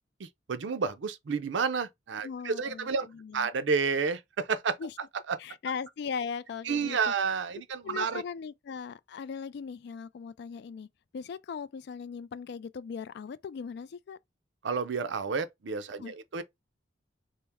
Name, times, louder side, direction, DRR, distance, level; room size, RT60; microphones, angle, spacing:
voice 1, 0.2-3.1 3.3-4.8 5.3-5.4 6.7-8.2 14.6-16.4, right 5 dB, 75° right, 0.5 m, -30 dB
voice 2, 2.2-3.5 4.8-4.9 5.4-7.1 7.8-10.9 11.1-14.2 16.0-16.1, left 6 dB, 60° left, 0.3 m, -39 dB
4.3 x 2.1 x 3.4 m
head